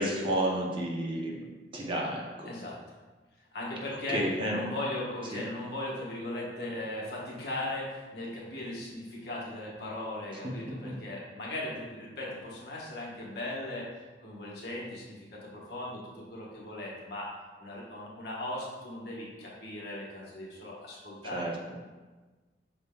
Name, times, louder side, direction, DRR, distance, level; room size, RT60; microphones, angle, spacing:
voice 1, 0.0-1.5 1.7-2.5 4.1-4.6 5.3-5.4 21.3-21.5, right 1 dB, 30° right, -2 dB, 0.6 m, -31 dB
voice 2, 2.4-2.8 3.5-4.2 4.5-13.9 14.2-17.3 17.6-21.5, left 1 dB, 65° left, -5 dB, 1.0 m, -38 dB
5.7 x 3.5 x 2.2 m, 1.3 s
head